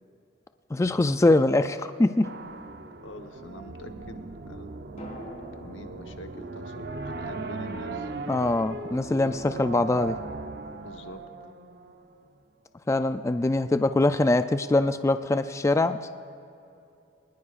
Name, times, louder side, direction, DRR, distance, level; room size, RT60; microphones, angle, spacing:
voice 1, 0.7-2.3 8.3-10.2 12.9-16.1, left 2 dB, 15° left, 10 dB, 0.3 m, -23 dB
sound 1, 2.2-12.3, right 3 dB, 60° right, 0.7 m, -38 dB
voice 2, 3.0-4.7 5.2-8.1 10.8-11.2 13.4-13.7, left 1 dB, 90° left, 6 dB, 1.1 m, -45 dB
sound 2, 5.0-8.9 9.2-9.3, left 1 dB, 40° left, 3.9 m, -49 dB
23.0 x 20.0 x 2.5 m, 2.6 s
head